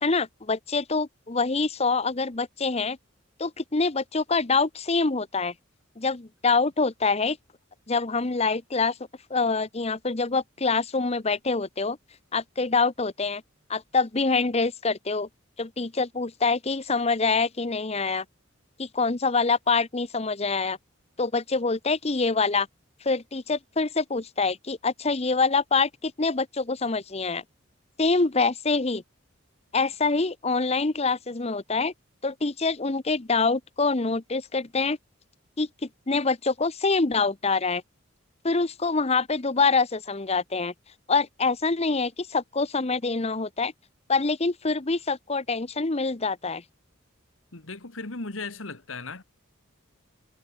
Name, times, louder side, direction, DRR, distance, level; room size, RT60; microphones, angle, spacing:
voice 1, 0.0-3.0 3.4-5.5 6.0-7.4 7.9-9.0 9.3-12.0 12.3-13.4 13.7-15.3 15.6-18.2 18.8-20.8 21.2-22.7 23.0-27.4 28.0-29.0 29.7-31.9 32.2-35.0 35.6-35.7 36.1-37.8 38.4-40.7 41.1-43.7 44.1-46.6, left 4 dB, 30° left, 0.9 m, -25 dB
voice 2, 47.5-49.2, left 3 dB, 70° left, 2.0 m, -36 dB
head